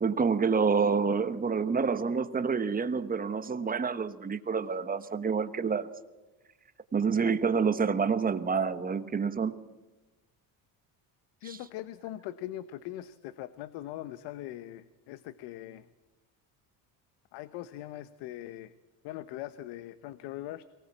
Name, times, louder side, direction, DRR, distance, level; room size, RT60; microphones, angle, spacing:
voice 1, 0.0-5.9 6.9-9.5 11.4-11.6, right 5 dB, 20° right, 11 dB, 1.1 m, -28 dB
voice 2, 11.4-15.9 17.3-18.7 19.0-20.6, left 14 dB, 85° left, 14 dB, 1.0 m, -41 dB
23.0 x 18.5 x 7.3 m, 1.1 s
cardioid pair, 130°, 41 cm